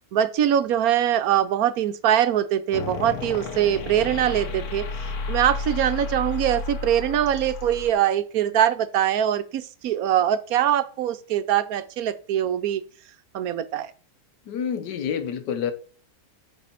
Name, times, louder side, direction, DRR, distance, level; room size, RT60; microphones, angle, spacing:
voice 1, 0.1-4.8 5.3-12.8 13.3-13.9, right 10 dB, 65° right, 1.0 m, -23 dB
sound 1, 2.7-7.9, left 4 dB, 65° left, 1.5 m, -32 dB
voice 2, 14.5-15.7, left 7 dB, 80° left, 1.5 m, -28 dB
9.2 x 4.2 x 5.6 m
omnidirectional pair, 1.8 m